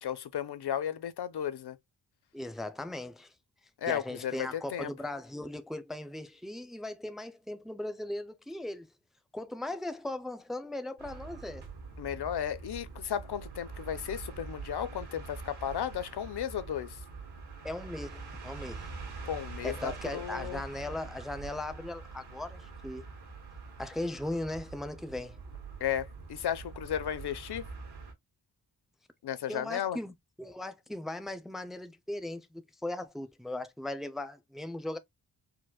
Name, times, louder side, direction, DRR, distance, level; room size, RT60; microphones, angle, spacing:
voice 1, 0.0-1.8 3.8-4.9 12.0-17.0 19.3-20.6 25.8-27.6 29.2-30.0, left 9 dB, 80° left, 0.7 m, -34 dB
voice 2, 2.3-3.3 3.9-8.9 9.3-11.7 17.6-18.9 19.6-23.0 23.8-25.4 29.5-35.0, left 1 dB, ahead, 0.4 m, -38 dB
sound 1, 11.0-28.1, right 4 dB, 80° right, 1.5 m, -44 dB
4.6 x 2.1 x 2.3 m
wide cardioid pair, 105°, 39 cm